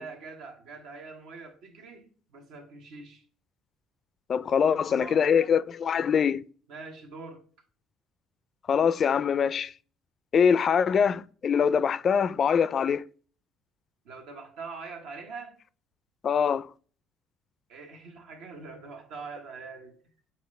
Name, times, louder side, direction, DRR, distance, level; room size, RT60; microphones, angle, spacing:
voice 1, 0.0-3.2 4.5-5.3 6.7-7.4 14.0-15.6 17.7-20.0, right 4 dB, 80° right, 1.3 m, -43 dB
voice 2, 4.3-6.4 8.7-9.7 10.3-13.1 16.2-16.7, left 7 dB, 45° left, 0.4 m, -23 dB
7.1 x 4.2 x 3.2 m
supercardioid pair, 80°, 0 cm